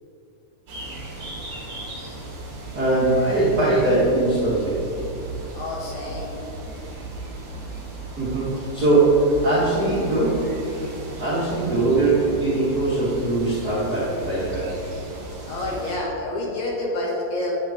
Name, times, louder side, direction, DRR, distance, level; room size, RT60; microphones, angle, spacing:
sound 1, 0.7-16.0, right 2 dB, 45° right, 2.1 m, -36 dB
voice 1, 2.7-4.7 8.2-10.5 11.2-14.7, right 2 dB, 80° right, -9 dB, 0.8 m, -21 dB
voice 2, 5.5-6.3 15.5-17.5, left 2 dB, 60° left, -3 dB, 2.1 m, -28 dB
10.5 x 8.6 x 3.6 m, 2.7 s
omnidirectional pair, 4.9 m